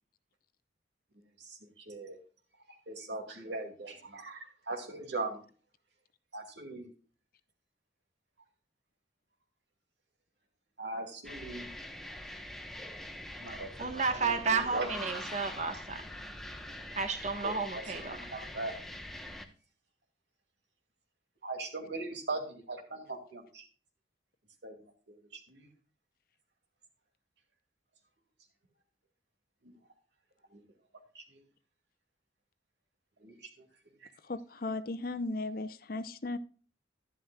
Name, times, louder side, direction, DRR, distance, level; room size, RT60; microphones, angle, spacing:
voice 1, 1.4-2.2 2.9-5.4 6.3-6.9 10.8-11.7 13.4-14.9 15.1-15.2 17.4-18.7 21.4-23.6 24.6-24.8 25.3-25.7 29.6-29.8 30.5-30.6 31.1-31.4 33.2-33.5 34.0-34.1, right 2 dB, 75° right, 4 dB, 2.4 m, -40 dB
sound 1, 11.2-19.5, left 1 dB, ahead, 1.0 m, -44 dB
voice 2, 13.8-16.0 16.9-18.4, right 4 dB, 40° right, 8 dB, 1.2 m, -32 dB
voice 3, 34.3-36.4, left 2 dB, 50° left, 13 dB, 0.7 m, -36 dB
11.0 x 11.0 x 2.3 m, 0.39 s
head